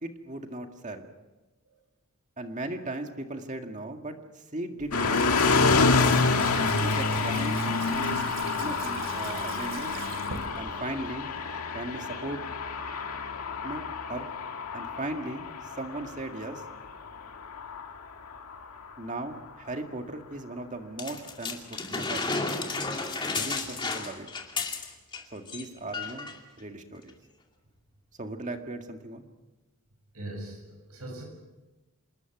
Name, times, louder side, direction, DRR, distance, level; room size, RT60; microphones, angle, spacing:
voice 1, 0.0-1.1 2.4-5.4 6.6-8.3 8.6-10.0 10.6-11.3 11.7-12.4 13.6-14.3 14.7-15.5 15.8-16.6 19.0-22.3 23.3-24.3 25.3-26.3 26.6-27.1 28.2-29.3, right 2 dB, 35° right, 4 dB, 1.9 m, -37 dB
Water tap faucet / Sink (filling or washing), 4.8-11.1, right 4 dB, 60° right, 2.8 m, -42 dB
sound 1, 4.9-18.9, left 4 dB, 85° left, 1.8 m, -28 dB
sound 2, 21.0-25.2 25.5-25.6 25.9-26.4 27.1-27.2, left 3 dB, 20° left, 2.4 m, -32 dB
voice 2, 30.1-31.2, right 1 dB, 85° right, 2 dB, 6.3 m, -40 dB
27.5 x 20.0 x 6.1 m, 1.1 s
head